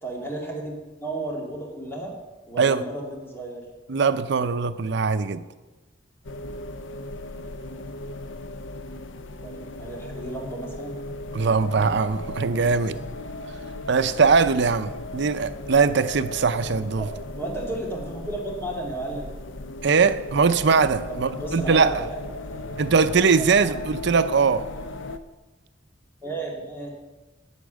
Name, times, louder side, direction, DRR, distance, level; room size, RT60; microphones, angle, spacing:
voice 1, 0.0-2.1 2.5-3.7 9.4-11.0 17.0-17.1 17.4-19.3 21.1-22.9 23.4-23.8 26.2-26.9, right 2 dB, 15° left, -2 dB, 2.3 m, -34 dB
voice 2, 3.9-5.4 11.3-13.0 13.9-17.1 19.8-22.0 22.8-24.7, right 5 dB, 65° right, 12 dB, 0.6 m, -21 dB
sound 1, 6.2-25.2, left 2 dB, 80° left, 0.6 m, -37 dB
9.4 x 8.3 x 6.3 m, 1.1 s
head